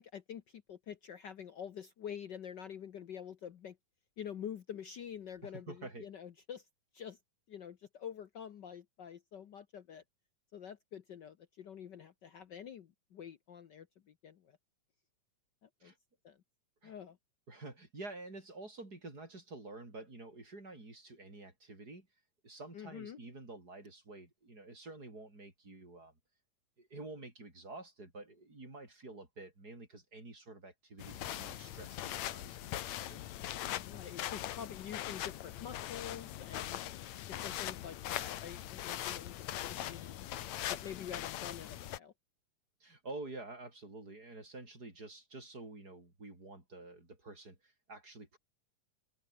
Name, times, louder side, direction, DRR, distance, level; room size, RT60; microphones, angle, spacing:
voice 1, 0.0-3.8 4.2-6.7 6.9-7.2 7.5-10.0 10.5-14.6 15.6-15.9 16.2-16.4 16.8-17.2 22.7-23.2 33.7-36.8 37.3-40.4 40.7-42.1, left 8 dB, 90° left, 0.9 m, -47 dB
voice 2, 5.4-6.1 15.8-16.0 16.8-16.9 17.5-22.1 22.4-26.1 26.8-33.2 42.8-48.4, right 2 dB, 30° right, 5.8 m, -49 dB
sound 1, 31.0-42.0, left 13 dB, 70° left, 2.3 m, -41 dB
open air
omnidirectional pair, 3.5 m